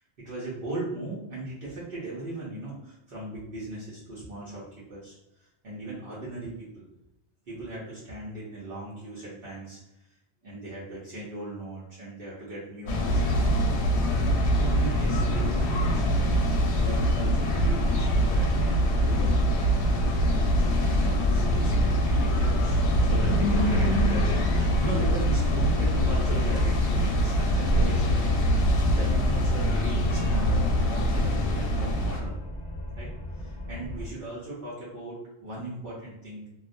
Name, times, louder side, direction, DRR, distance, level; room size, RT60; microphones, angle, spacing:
voice 1, 0.2-4.6 4.9-6.8 7.5-9.8 10.4-13.4 14.5-16.4 16.8-32.4 33.0-33.1 33.3-36.6, right 1 dB, 60° right, -8 dB, 0.9 m, -38 dB
sound 1, 12.9-32.2, equal, 90° left, 0.9 m, -24 dB
sound 2, 14.8-15.1 15.5-17.9 18.2-19.4 21.2-22.9 24.9-29.0, equal, 25° right, 0.6 m, -44 dB
sound 3, 16.6-34.1, left 1 dB, 35° left, 0.5 m, -37 dB
2.3 x 2.1 x 2.5 m, 0.90 s
omnidirectional pair, 1.1 m